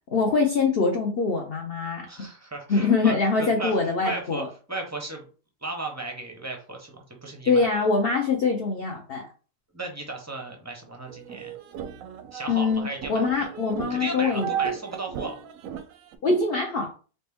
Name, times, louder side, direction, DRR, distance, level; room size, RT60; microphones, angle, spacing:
voice 1, 0.1-2.3 2.7-4.5 7.5-9.3 12.5-14.5 16.2-16.9, left 4 dB, 55° left, 2 dB, 0.7 m, -24 dB
voice 2, 2.1-3.8 4.0-4.4 4.7-5.3 5.6-7.7 9.7-11.5 12.3-13.4 13.9-15.4, right 2 dB, 20° right, 2 dB, 0.5 m, -35 dB
sound 1, 11.1-16.2, right 8 dB, 70° right, 0.8 m, -35 dB
4.3 x 2.8 x 3.4 m, 0.37 s
omnidirectional pair, 1.7 m